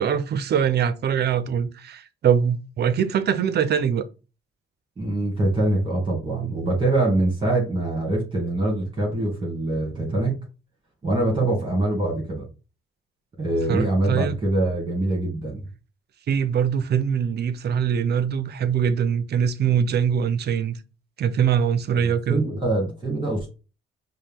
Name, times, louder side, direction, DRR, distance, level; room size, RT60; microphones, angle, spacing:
voice 1, 0.0-4.0 13.7-14.4 16.3-20.7 21.2-22.5, right 8 dB, 55° right, 0.6 m, -23 dB
voice 2, 5.0-10.4 11.0-12.5 13.4-15.6 22.0-23.5, right 2 dB, 25° right, 2.1 m, -24 dB
5.2 x 2.2 x 3.6 m
cardioid pair, 90°, 20 cm